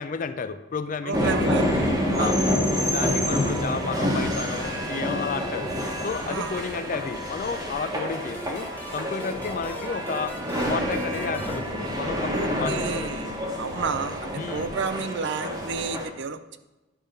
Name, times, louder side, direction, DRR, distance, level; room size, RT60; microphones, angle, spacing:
voice 1, 0.0-1.6 2.1-2.4 2.9-5.7 6.0-10.4 10.7-13.1 14.3-14.7, left 5 dB, 40° left, 11 dB, 0.4 m, -32 dB
voice 2, 1.0-1.8 2.2-2.5 6.3-6.6 12.3-13.3 13.6-16.6, right 5 dB, 55° right, 11 dB, 0.5 m, -31 dB
sound 1, 1.1-16.0, equal, 15° right, 1.1 m, -28 dB
sound 2, 2.8-15.0, right 3 dB, 75° right, 0.9 m, -42 dB
sound 3, 8.3-12.7, equal, 10° left, 0.7 m, -42 dB
10.5 x 3.6 x 5.4 m, 1.1 s
head